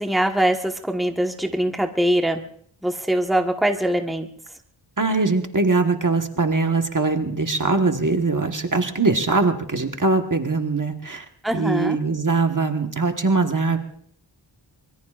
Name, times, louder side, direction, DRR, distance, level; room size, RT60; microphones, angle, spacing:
voice 1, 0.0-2.4 2.8-4.3 11.4-12.0, right 1 dB, ahead, 3 dB, 1.3 m, -22 dB
voice 2, 5.0-11.2 11.5-13.8, right 3 dB, 40° right, 5 dB, 1.4 m, -22 dB
25.0 x 22.0 x 2.5 m, 0.62 s
wide cardioid pair, 65°, 47 cm